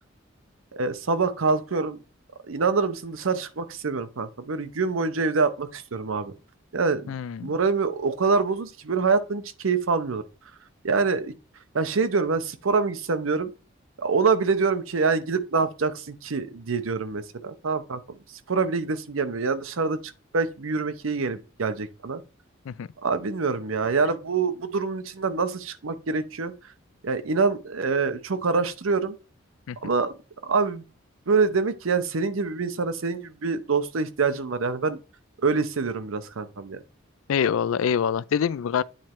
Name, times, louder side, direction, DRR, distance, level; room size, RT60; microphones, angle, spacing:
voice 1, 0.7-2.0 2.5-6.3 6.7-7.1 7.4-10.2 10.8-11.3 11.7-13.5 14.0-18.0 18.5-20.0 20.3-22.2 23.0-26.5 27.0-29.2 29.8-30.1 30.4-30.8 31.3-35.0 35.4-36.8, right 4 dB, 85° right, 0.7 m, -25 dB
voice 2, 7.1-7.5 22.7-22.9 29.7-29.8 37.3-38.8, left 7 dB, 85° left, 0.4 m, -25 dB
8.9 x 3.1 x 4.4 m
head